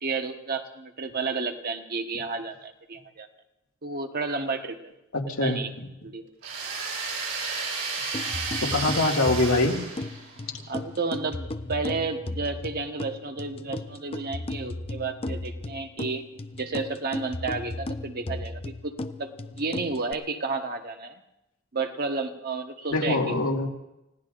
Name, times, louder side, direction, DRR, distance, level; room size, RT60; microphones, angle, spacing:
voice 1, 0.0-3.3 3.8-4.9 5.4-5.7 6.0-6.3 10.7-16.2 16.6-18.9 19.2-21.2 21.7-23.7, right 4 dB, 45° right, 5 dB, 1.3 m, -32 dB
voice 2, 5.1-5.9 8.6-9.8 22.9-23.7, left 2 dB, 85° left, 0 dB, 2.1 m, -24 dB
sound 1, 6.4-10.5, right 4 dB, 70° right, 7.4 m, -32 dB
sound 2, 8.1-20.1, left 2 dB, 30° left, 0.6 m, -36 dB
29.5 x 17.0 x 2.6 m, 0.91 s
head